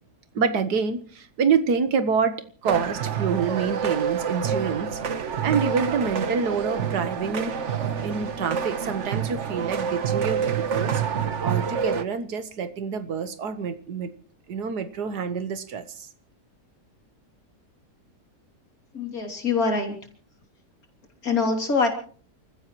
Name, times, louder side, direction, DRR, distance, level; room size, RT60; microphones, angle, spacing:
voice 1, 0.3-5.0 5.4-7.6 8.0-11.0 11.4-14.1 14.5-16.1, right 6 dB, 75° right, 11 dB, 1.7 m, -27 dB
sound 1, 2.6-12.0, right 7 dB, 50° right, 1.3 m, -27 dB
voice 2, 18.9-20.0 21.2-21.9, left 4 dB, 60° left, 3 dB, 3.5 m, -24 dB
28.5 x 15.0 x 3.0 m, 0.44 s
omnidirectional pair, 1.8 m